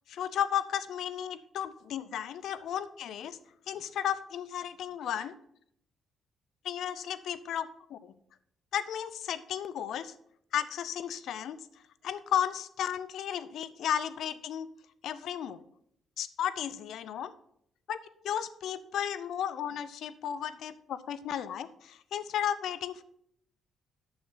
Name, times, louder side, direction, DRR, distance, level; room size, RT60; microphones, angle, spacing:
voice 1, 0.1-3.4 3.7-5.3 6.6-8.1 8.7-10.1 10.5-11.6 12.0-14.7 15.0-15.6 16.2-17.3 17.9-18.0 18.2-23.0, left 9 dB, 75° left, 15 dB, 0.5 m, -34 dB
8.8 x 6.7 x 3.9 m, 0.70 s
cardioid pair, 90°, 0 cm